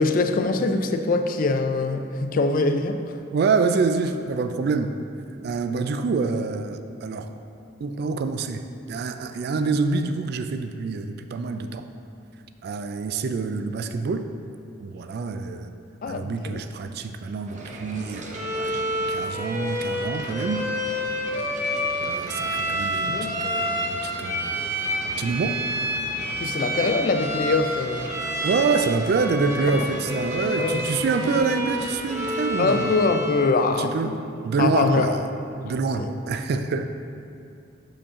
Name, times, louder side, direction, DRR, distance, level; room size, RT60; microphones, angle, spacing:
voice 1, 0.0-3.2 16.0-16.6 23.1-23.4 26.3-28.2 29.7-29.8 30.6-30.8 31.2-31.3 32.6-34.2 34.6-35.1 36.0-36.1, left 3 dB, 50° left, 7 dB, 0.4 m, -23 dB
voice 2, 3.3-4.9 5.4-7.3 7.8-8.6 8.9-11.9 12.6-14.3 14.8-15.7 16.1-18.8 19.1-20.7 22.0-24.7 25.1-25.6 28.4-32.9 33.7-34.1 34.4-35.2 35.6-36.8, right 4 dB, 55° right, 8 dB, 0.3 m, -26 dB
sound 1, 17.5-33.0, right 1 dB, 40° right, 0.7 m, -40 dB
Bowed string instrument, 18.3-33.6, equal, 15° right, 0.9 m, -29 dB
6.9 x 5.0 x 3.7 m, 2.6 s
head